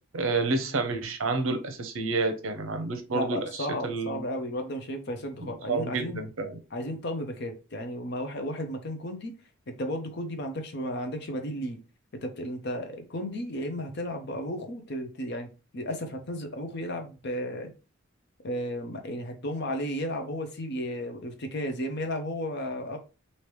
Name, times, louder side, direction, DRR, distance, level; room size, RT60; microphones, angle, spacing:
voice 1, 0.1-4.2 5.4-6.6, right 3 dB, 75° right, 0.7 m, -29 dB
voice 2, 3.1-6.2 6.7-9.3 9.8-11.8 12.2-15.5 15.7-17.7 18.4-23.0, equal, 55° left, 0.7 m, -33 dB
3.1 x 2.8 x 3.1 m
head